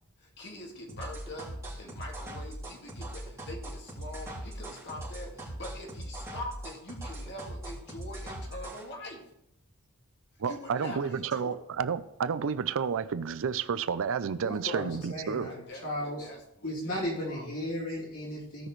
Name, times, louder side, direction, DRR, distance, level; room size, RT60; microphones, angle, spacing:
voice 1, 0.2-1.5 1.8-9.2 10.4-11.6 15.4-17.0 17.2-17.5, left 1 dB, 55° left, 2.1 m, -44 dB
sound 1, 0.9-8.8, right 1 dB, 15° right, 3.4 m, -40 dB
voice 2, 10.4-15.5, right 6 dB, 65° right, 0.5 m, -31 dB
voice 3, 14.4-16.3 16.6-18.7, equal, 80° left, 3.0 m, -35 dB
16.0 x 6.0 x 3.2 m
head